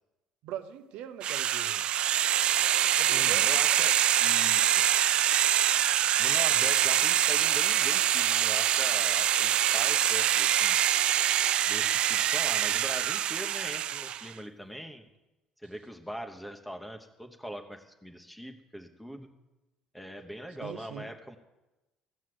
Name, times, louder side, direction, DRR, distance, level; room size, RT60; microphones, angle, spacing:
voice 1, 0.4-1.8 3.0-3.6 20.6-21.1, right 10 dB, 80° right, 9 dB, 1.0 m, -41 dB
sound 1, 1.2-14.3, right 11 dB, 55° right, 0.3 m, -25 dB
voice 2, 3.0-4.8 6.2-10.8 11.7-15.1 15.6-19.3 19.9-21.4, equal, ahead, 5 dB, 1.1 m, -41 dB
15.5 x 6.3 x 8.0 m, 1.1 s
cardioid pair, 115°, 2 cm